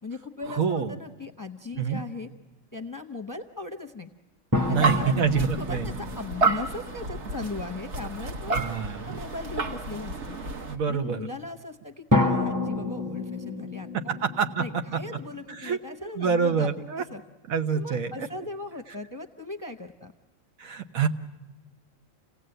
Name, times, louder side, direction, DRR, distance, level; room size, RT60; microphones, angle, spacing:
voice 1, 0.0-2.3 2.7-4.1 4.7-8.6 9.1-10.4 10.8-14.1 14.6-17.2 17.7-20.1, left 3 dB, 20° left, 7 dB, 0.7 m, -38 dB
voice 2, 0.5-0.9 1.8-2.0 4.7-5.9 8.5-9.1 10.7-11.3 14.4-14.6 15.6-17.0 17.5-18.3 20.6-21.1, right 6 dB, 85° right, 7 dB, 1.4 m, -26 dB
sound 1, 4.5-7.9 12.1-15.4, left 2 dB, 15° right, 0.8 m, -29 dB
sound 2, 4.5-10.8, right 3 dB, 55° right, 1.4 m, -30 dB
28.5 x 17.0 x 7.8 m, 1.2 s
omnidirectional pair, 1.4 m